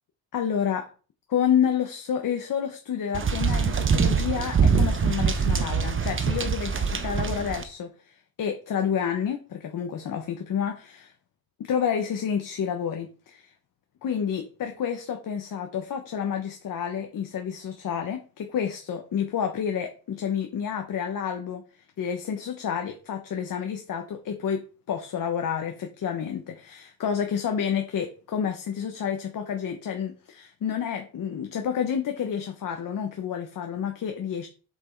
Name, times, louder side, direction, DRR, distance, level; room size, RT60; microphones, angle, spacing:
voice 1, 0.3-0.9 1.3-11.1 11.6-13.5 14.0-21.6 22.0-34.5, left 8 dB, 55° left, 1.1 m, -29 dB
sound 1, 3.1-7.6, right 5 dB, 30° right, 1.0 m, -24 dB
7.3 x 6.0 x 4.6 m
cardioid pair, 150°, 39 cm